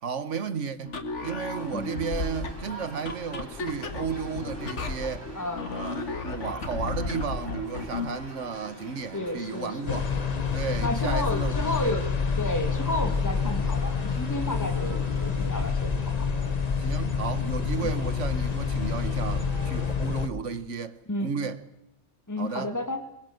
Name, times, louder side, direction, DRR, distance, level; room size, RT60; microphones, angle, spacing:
voice 1, 0.0-5.3 5.7-10.1 10.5-12.0 16.8-21.6 22.4-22.7, right 6 dB, 85° right, 1.7 m, -33 dB
sound 1, 0.9-8.2, left 3 dB, 80° left, 2.0 m, -34 dB
sound 2, 1.5-20.0, right 1 dB, 50° right, 5.2 m, -45 dB
voice 2, 5.3-5.7 9.1-10.0 10.8-12.0 12.4-16.3 17.8-17.9 21.1-21.3 22.3-23.0, left 1 dB, 15° left, 2.2 m, -32 dB
sound 3, 9.9-20.3, left 5 dB, 35° left, 1.1 m, -28 dB
22.5 x 22.5 x 7.9 m
omnidirectional pair, 1.2 m